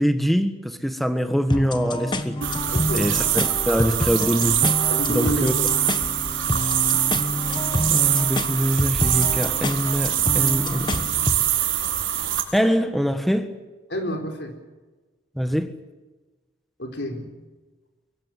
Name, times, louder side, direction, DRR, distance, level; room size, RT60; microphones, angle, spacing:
voice 1, 0.0-2.4 2.9-4.7 5.1-5.5 7.9-11.1 12.5-13.5 15.3-15.7, equal, ahead, 1.6 m, -24 dB
sound 1, 1.5-11.5, left 1 dB, 25° left, 1.4 m, -28 dB
sound 2, 2.4-12.4, right 10 dB, 90° right, 4.8 m, -24 dB
voice 2, 2.7-3.1 4.9-5.6 13.9-14.5 16.8-17.3, equal, 65° left, 4.3 m, -29 dB
24.0 x 23.5 x 7.5 m
head